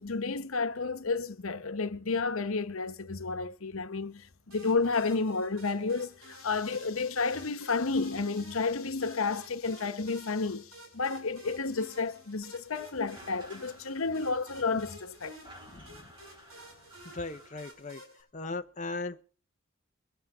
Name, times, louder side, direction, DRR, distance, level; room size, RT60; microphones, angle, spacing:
voice 1, 0.0-15.4, left 4 dB, 90° left, 1.0 m, -31 dB
sound 1, 4.5-18.2, right 1 dB, 90° right, 7.5 m, -52 dB
sound 2, 12.7-12.8 12.9-17.7, equal, 20° right, 5.2 m, -54 dB
voice 2, 15.7-16.1 17.0-18.0 18.3-19.2, left 3 dB, 35° left, 0.7 m, -38 dB
23.0 x 8.2 x 4.9 m
head